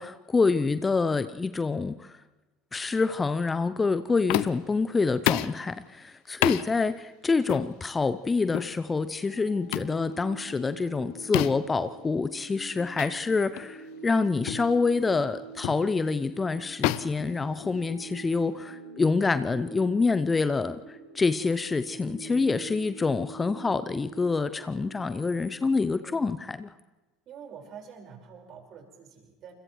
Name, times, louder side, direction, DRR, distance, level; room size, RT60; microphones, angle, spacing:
voice 1, 0.0-2.2 2.7-26.7, left 4 dB, 20° left, 13 dB, 0.6 m, -27 dB
sound 1, 4.3-4.7 5.3-5.6 6.4-6.7 7.5-7.7 8.5-8.7 9.7-10.0 11.3-11.7 13.0-13.1 13.6-13.7 14.5-14.7 15.6-15.9 16.8-18.0, left 18 dB, 55° left, 0.6 m, -29 dB
sound 2, 9.1-25.7, right 3 dB, 80° left, 3.6 m, -45 dB
voice 2, 26.0-26.3 27.2-29.5, right 7 dB, 40° right, 2 dB, 5.0 m, -46 dB
29.5 x 27.5 x 3.2 m, 1.2 s
figure-of-eight pair, 70°, 0 cm